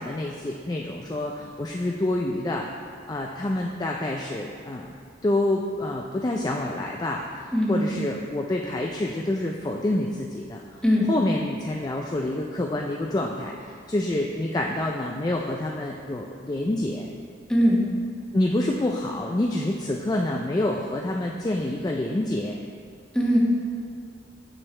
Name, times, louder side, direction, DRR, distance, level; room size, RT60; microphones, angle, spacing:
voice 1, 0.0-2.7 3.1-4.9 5.2-10.8 11.1-17.1 18.3-22.6, left 1 dB, 20° left, 0 dB, 0.3 m, -27 dB
voice 2, 7.5-8.0 10.8-11.1 17.5-17.9 23.1-23.4, equal, 5° left, -4 dB, 1.1 m, -21 dB
8.7 x 6.7 x 3.2 m, 2.2 s
head